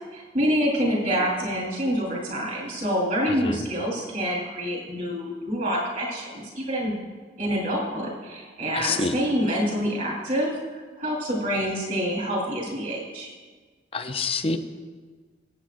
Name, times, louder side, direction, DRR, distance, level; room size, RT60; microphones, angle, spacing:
voice 1, 0.1-6.9 7.4-13.3, equal, 50° right, -3 dB, 3.7 m, -27 dB
voice 2, 3.3-3.6 8.7-9.1 13.9-14.6, left 4 dB, 30° left, 7 dB, 0.6 m, -27 dB
24.0 x 8.3 x 2.5 m, 1.5 s
head